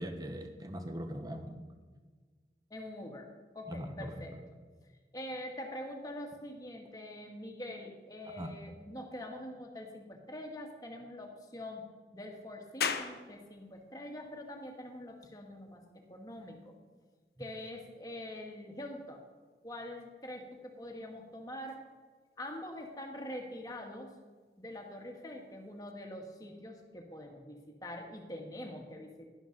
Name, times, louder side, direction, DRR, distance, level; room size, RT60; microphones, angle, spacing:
voice 1, 0.0-1.6 3.7-4.1 8.4-8.5, equal, 20° right, 6 dB, 1.0 m, -40 dB
voice 2, 2.7-3.3 3.5-4.6 5.1-11.8 12.1-15.8 16.1-16.7 17.4-19.2 19.6-21.8 22.4-24.1 24.6-29.3, left 1 dB, 20° left, 2 dB, 1.4 m, -44 dB
sound 1, 12.8-25.9, left 6 dB, 60° left, 0.8 m, -46 dB
11.5 x 11.0 x 3.9 m, 1.4 s
head